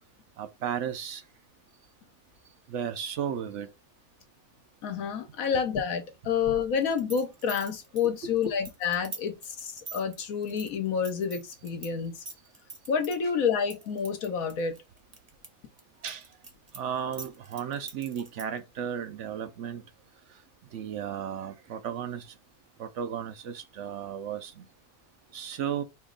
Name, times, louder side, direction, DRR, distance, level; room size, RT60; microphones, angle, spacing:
voice 1, 0.4-1.2 2.7-3.7 8.2-8.5 16.0-16.2 16.8-19.8 20.7-22.3 22.8-24.6 25.3-25.8, right 8 dB, 60° right, 0.9 m, -34 dB
voice 2, 4.8-12.2 12.9-14.8, left 6 dB, 70° left, 1.3 m, -29 dB
sound 1, 6.8-11.9 12.2-13.2 13.7-15.5 15.8-18.6, right 3 dB, 30° right, 0.9 m, -43 dB
4.4 x 3.1 x 3.8 m
omnidirectional pair, 1.5 m